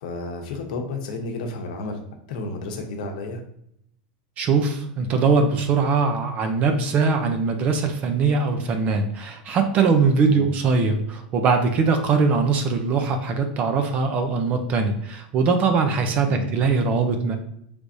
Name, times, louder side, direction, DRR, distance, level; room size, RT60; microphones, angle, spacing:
voice 1, 0.0-2.0 2.3-3.4 10.3-10.5 16.3-16.5, left 2 dB, 70° left, 3 dB, 0.9 m, -31 dB
voice 2, 4.4-17.4, right 4 dB, 30° right, 6 dB, 0.5 m, -21 dB
4.7 x 3.3 x 2.6 m, 0.73 s
supercardioid pair, 150°, 5 cm